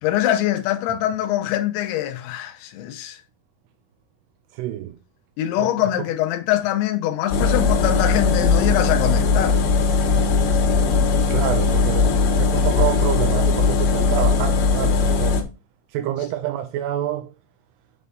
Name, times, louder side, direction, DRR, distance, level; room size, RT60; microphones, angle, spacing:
voice 1, 0.0-3.2 5.4-9.6, left 12 dB, 90° left, 3.0 m, -23 dB
voice 2, 4.6-5.0 5.6-5.9 11.3-15.4 15.9-17.3, right 12 dB, 80° right, 2.4 m, -27 dB
sound 1, 7.3-15.4, left 4 dB, 75° left, 3.3 m, -19 dB
9.5 x 3.5 x 4.0 m
omnidirectional pair, 5.3 m